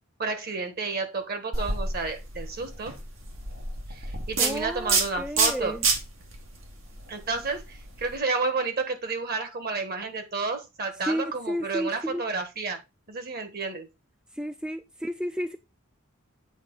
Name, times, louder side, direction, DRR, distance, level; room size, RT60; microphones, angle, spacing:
voice 1, 0.2-2.9 3.9-5.8 7.1-12.8 13.1-13.9, right 4 dB, 50° right, 1.5 m, -31 dB
sound 1, 1.5-8.1, right 4 dB, 80° right, 1.9 m, -29 dB
voice 2, 4.4-5.8 11.1-12.2 14.4-15.6, equal, 5° right, 0.3 m, -32 dB
8.1 x 4.5 x 3.9 m
head